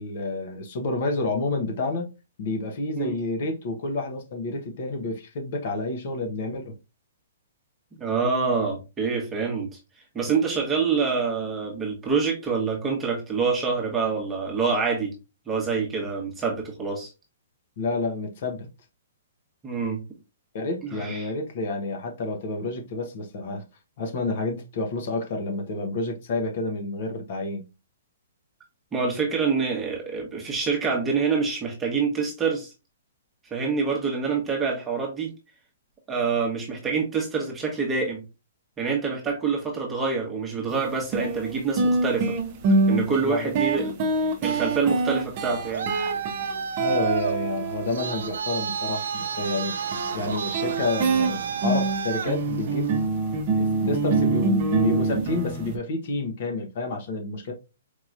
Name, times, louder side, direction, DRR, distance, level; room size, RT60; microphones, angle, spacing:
voice 1, 0.0-2.1 2.4-6.8 17.8-18.7 20.5-23.6 24.0-27.6 43.1-43.5 46.8-49.8 50.1-52.9 53.6-57.5, left 2 dB, 50° left, 1.0 m, -29 dB
voice 2, 8.0-9.8 10.1-15.1 15.5-17.1 19.6-20.0 20.9-21.3 28.9-32.7 33.5-35.3 36.1-38.2 38.8-42.4 42.9-43.9 44.4-45.9, right 5 dB, 10° right, 1.1 m, -26 dB
sound 1, 40.7-40.8 41.1-48.4 49.9-55.8, right 3 dB, 30° right, 0.7 m, -25 dB
Traffic noise roadway noise, 45.4-53.1, right 7 dB, 70° right, 0.5 m, -31 dB
4.6 x 2.9 x 2.5 m
hypercardioid pair, 165°, 0 cm